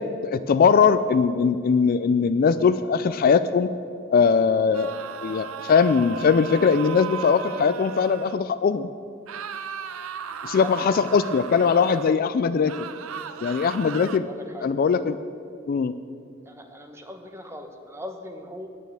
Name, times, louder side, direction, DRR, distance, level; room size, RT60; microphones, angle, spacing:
voice 1, 0.2-3.7 4.1-4.9 5.2-8.9 10.4-12.7 13.4-14.3 14.6-15.2 15.7-15.9, left 5 dB, 45° left, 13 dB, 0.3 m, -20 dB
sound 1, 4.7-8.4 9.3-12.2 12.6-14.2, right 7 dB, 85° right, 0.5 m, -36 dB
voice 2, 14.2-14.7 16.5-18.7, equal, 15° right, 4 dB, 1.0 m, -39 dB
9.3 x 9.1 x 7.9 m, 2.4 s
head